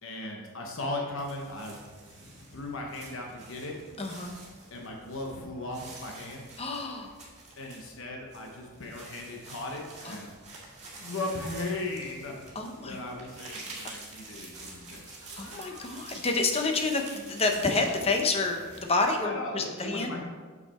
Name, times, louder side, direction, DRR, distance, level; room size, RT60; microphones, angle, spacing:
voice 1, 0.0-1.8 2.1-3.8 4.7-6.5 7.6-10.3 11.0-12.3 12.8-15.9 19.2-20.2, left 2 dB, 60° left, 0 dB, 1.0 m, -37 dB
sound 1, 1.2-19.0, right 1 dB, 30° right, 1.8 m, -46 dB
voice 2, 4.0-4.3 6.6-7.2 10.1-10.2 12.6-13.0 15.4-20.1, left 3 dB, 30° left, 4 dB, 0.7 m, -29 dB
6.7 x 6.0 x 4.3 m, 1.4 s
head